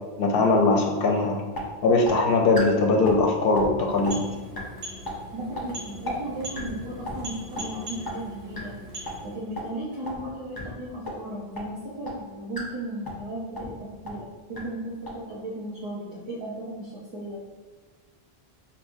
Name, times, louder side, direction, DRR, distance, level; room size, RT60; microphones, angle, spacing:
voice 1, 0.2-1.4 1.8-4.2, left 3 dB, 70° left, 2 dB, 0.7 m, -21 dB
sound 1, 1.5-1.6 2.0-2.1 2.5-2.6 3.0-3.2 3.5-3.7 4.0-4.1 4.5-4.6 5.0-5.1 5.5-5.6 6.0-6.1 6.5-6.7 7.0-7.2 7.5-7.6 8.0-8.1 8.5-8.6 9.0-9.1 9.5-9.6 10.0-10.2 10.5-10.6 11.0-11.1 11.5-11.6 12.0-12.1 12.5-12.6 13.0-13.2 13.5-13.7 14.0-14.1 14.5-14.6 15.0-15.1, left 1 dB, 25° left, 0.6 m, -33 dB
sound 2, 3.8-9.5, equal, 80° right, 1.1 m, -41 dB
voice 2, 5.3-8.7 9.2-17.4, right 1 dB, 35° right, -7 dB, 0.5 m, -36 dB
4.9 x 2.7 x 2.6 m, 1.4 s
omnidirectional pair, 1.1 m